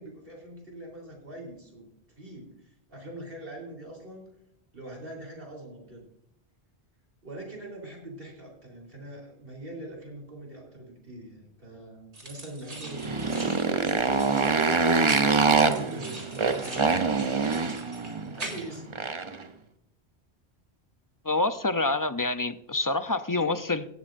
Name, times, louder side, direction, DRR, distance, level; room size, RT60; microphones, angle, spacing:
voice 1, 0.0-1.9 2.2-4.3 4.7-6.0 7.2-17.3 18.3-19.0, right 1 dB, 55° right, 0 dB, 4.1 m, -43 dB
sound 1, 12.1-18.8, right 2 dB, 80° right, 3.5 m, -42 dB
Motorcycle, 12.8-19.4, right 4 dB, 30° right, 0.8 m, -25 dB
voice 2, 21.2-23.9, left 2 dB, 25° left, 10 dB, 0.5 m, -27 dB
17.5 x 14.0 x 2.6 m, 0.79 s
omnidirectional pair, 1.1 m